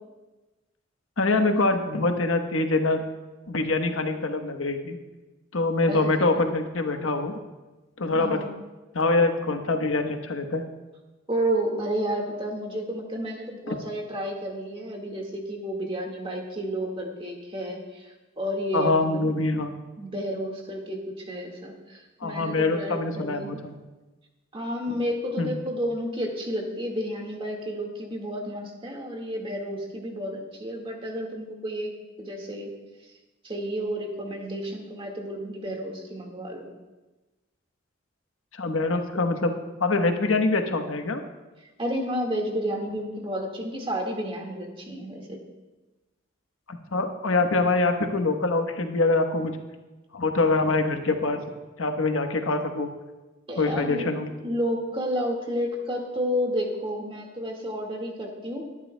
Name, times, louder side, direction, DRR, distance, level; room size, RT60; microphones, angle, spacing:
voice 1, 1.2-3.0 3.5-5.0 5.5-7.4 8.0-8.4 8.9-10.6 13.7-13.8 18.7-19.7 22.2-23.7 24.9-25.0 25.4-25.5 38.5-39.5 39.8-41.2 46.7-49.6 50.1-51.4 51.8-52.9 53.6-54.3, left 3 dB, 85° left, 5 dB, 1.1 m, -24 dB
voice 2, 8.1-8.5 11.3-19.6 20.0-23.6 24.5-32.7 33.4-36.7 41.8-45.4 53.5-54.1 54.4-58.6, equal, 25° right, 1 dB, 1.8 m, -31 dB
20.5 x 11.0 x 2.2 m, 1.2 s
head